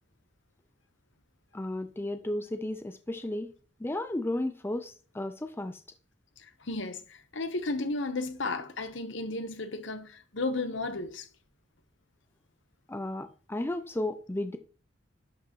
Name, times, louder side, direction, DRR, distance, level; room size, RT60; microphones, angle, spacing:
voice 1, 1.5-3.5 3.8-5.8 12.9-14.6, left 1 dB, 10° left, 0.4 m, -34 dB
voice 2, 6.4-11.3, left 2 dB, 70° left, 1.1 m, -34 dB
11.0 x 6.4 x 3.0 m
head